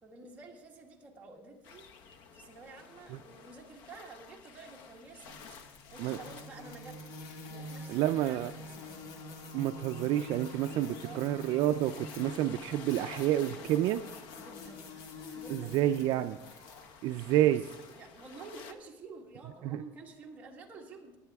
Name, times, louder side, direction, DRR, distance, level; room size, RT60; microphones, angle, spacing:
voice 1, 0.0-1.9 2.3-7.0 7.5-9.0 10.7-11.3 14.4-14.9 15.3-16.4 17.4-17.6 17.9-21.2, right 3 dB, 15° right, -2 dB, 1.7 m, -50 dB
sound 1, 1.6-18.7, left 6 dB, 65° left, 0.9 m, -52 dB
sound 2, 5.2-18.0, left 2 dB, 90° left, 1.7 m, -46 dB
voice 2, 7.9-8.5 9.5-14.0 15.5-16.3 17.0-17.6 19.6-19.8, right 13 dB, 55° right, 9 dB, 0.4 m, -29 dB
19.0 x 8.9 x 3.5 m, 1.0 s
cardioid pair, 170°, 9 cm